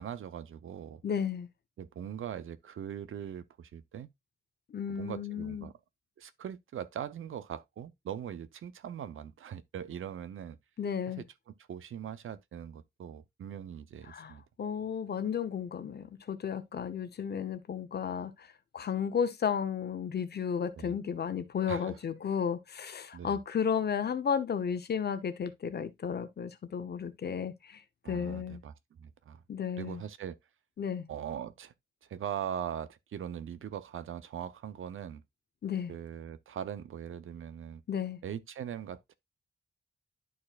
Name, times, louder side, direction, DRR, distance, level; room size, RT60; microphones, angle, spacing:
voice 1, 0.0-1.0 1.8-4.1 4.9-5.7 6.2-10.6 11.1-11.3 11.7-14.4 20.8-20.9 21.7-22.0 23.1-23.4 28.0-28.7 29.0-29.4 29.8-30.4 31.1-31.7 32.0-35.2 35.9-37.8 38.2-39.2, right 9 dB, 85° right, 0.7 m, -41 dB
voice 2, 1.0-1.5 4.7-5.7 10.8-11.2 14.1-18.5 18.7-28.6 29.5-30.0 30.8-31.1 35.6-35.9 37.9-38.2, left 7 dB, 55° left, 0.9 m, -33 dB
12.0 x 4.4 x 2.4 m
wide cardioid pair, 170°, 20 cm